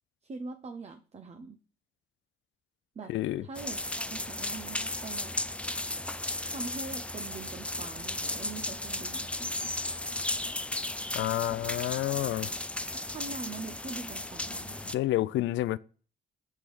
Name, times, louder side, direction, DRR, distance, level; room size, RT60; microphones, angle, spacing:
voice 1, 0.2-1.6 3.0-3.1 3.4-5.3 6.5-9.3 12.9-14.8, right 4 dB, 30° right, 0.6 m, -42 dB
voice 2, 3.1-3.5 11.1-12.5 14.9-15.8, left 14 dB, 75° left, 0.4 m, -29 dB
sound 1, 3.5-14.9, left 2 dB, 5° left, 0.3 m, -35 dB
7.3 x 3.4 x 6.1 m
cardioid pair, 90°, 20 cm